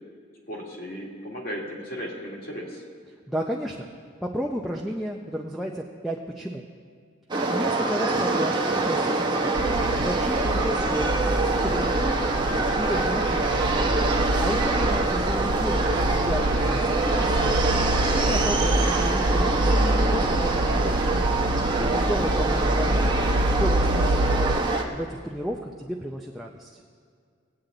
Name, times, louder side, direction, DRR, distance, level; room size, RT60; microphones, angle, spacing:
voice 1, 0.5-2.8, equal, 45° left, -3 dB, 2.3 m, -36 dB
voice 2, 3.3-3.8 4.2-6.6 7.5-8.5 8.8-9.5 10.0-11.1 11.6-12.2 12.6-13.5 14.4-17.6 18.1-21.2 21.8-23.1 23.5-24.5 24.9-26.7, equal, ahead, -1 dB, 0.5 m, -32 dB
sound 1, 7.3-24.8, right 3 dB, 20° right, 0.9 m, -25 dB
sound 2, 9.5-24.6, right 1 dB, 70° right, 0.7 m, -27 dB
19.5 x 8.7 x 3.9 m, 2.1 s
head